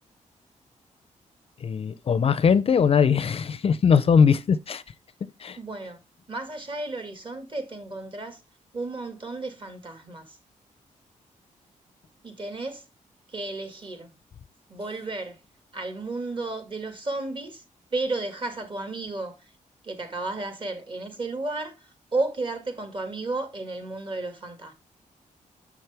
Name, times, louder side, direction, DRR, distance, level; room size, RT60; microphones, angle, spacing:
voice 1, 1.6-4.8 5.4-5.6, left 6 dB, 45° left, 0.5 m, -20 dB
voice 2, 5.6-6.0 6.3-8.4 8.7-10.3 12.2-12.8 13.3-14.1 14.7-15.4 15.7-17.6 17.9-19.3 19.8-24.7, right 2 dB, 40° right, 1.8 m, -33 dB
7.1 x 5.9 x 3.4 m
wide cardioid pair, 120°, 13 cm